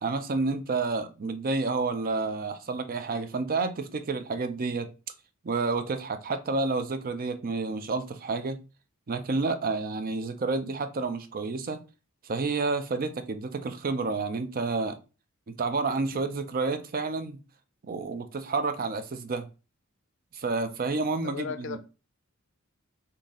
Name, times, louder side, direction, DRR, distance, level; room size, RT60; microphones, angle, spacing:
voice 1, 0.0-4.9 5.4-8.6 9.1-11.8 12.2-15.0 15.5-17.4 17.8-19.5 20.3-21.8, right 3 dB, 45° right, 0.5 m, -30 dB
voice 2, 20.9-21.8, left 5 dB, 60° left, 0.5 m, -37 dB
4.0 x 2.7 x 3.6 m
head